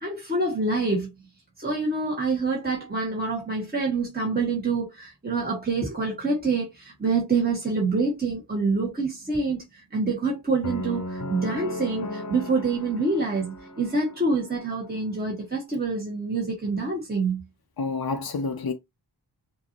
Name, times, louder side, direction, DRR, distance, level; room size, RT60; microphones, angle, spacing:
voice 1, 0.0-1.1 1.6-17.4, right 3 dB, 20° right, 1.9 m, -26 dB
sound 1, 10.6-14.8, left 1 dB, 40° left, 1.0 m, -36 dB
voice 2, 17.8-18.7, left 4 dB, 60° left, 0.7 m, -28 dB
6.3 x 2.8 x 3.0 m
wide cardioid pair, 85°, 42 cm